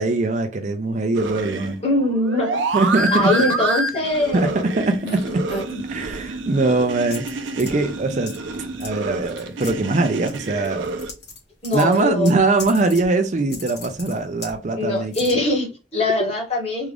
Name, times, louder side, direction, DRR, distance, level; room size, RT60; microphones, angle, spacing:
voice 1, 0.0-1.8 2.7-3.3 4.3-5.5 5.9-8.3 8.8-10.9 11.7-15.1, right 2 dB, 40° right, 0.4 m, -21 dB
sound 1, 1.1-11.1, right 3 dB, 80° right, 0.6 m, -28 dB
voice 2, 1.8-2.6 3.1-4.5 11.6-12.3 14.8-16.9, left 2 dB, 35° left, 1.3 m, -22 dB
sound 2, 5.0-6.3 7.1-7.7 8.3-8.5 8.8-8.9 9.2-9.7 10.3-11.4 11.6-13.1 13.4-14.6 15.1-15.3, left 1 dB, 60° left, 1.5 m, -34 dB
3.6 x 2.4 x 3.2 m
head